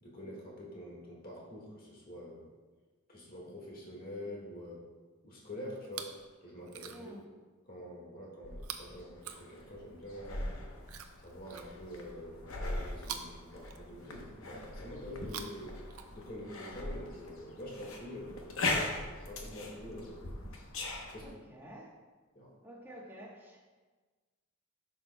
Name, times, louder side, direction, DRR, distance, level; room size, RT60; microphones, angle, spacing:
voice 1, 0.0-2.5 3.1-4.9 5.2-7.1 7.7-10.4 11.2-20.2 21.1-21.4 22.3-22.5, left 1 dB, 40° left, -3 dB, 1.7 m, -46 dB
Chewing mastication, 5.8-6.3 6.6-7.2 8.6-10.0 10.8-12.1 13.0-14.3 15.1-16.5 17.5-17.6, right 8 dB, 80° right, 0.5 m, -47 dB
voice 2, 6.9-7.2 21.2-21.9 22.6-23.6, equal, 10° right, -3 dB, 1.1 m, -49 dB
sound 1, 8.4-21.3, left 2 dB, 65° left, 0.9 m, -40 dB
10.0 x 6.2 x 2.2 m, 1.3 s
head